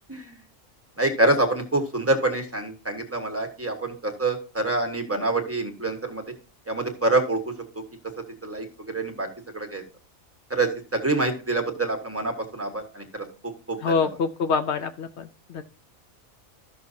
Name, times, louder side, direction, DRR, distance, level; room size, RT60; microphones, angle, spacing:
voice 1, 1.0-6.3 6.7-7.5 8.4-9.3 9.5-9.8 10.5-14.2, right 2 dB, 10° right, 4 dB, 1.3 m, -26 dB
voice 2, 13.8-15.2 15.5-15.6, left 5 dB, 65° left, 8 dB, 0.7 m, -25 dB
13.5 x 6.2 x 2.7 m, 0.35 s
omnidirectional pair, 1.4 m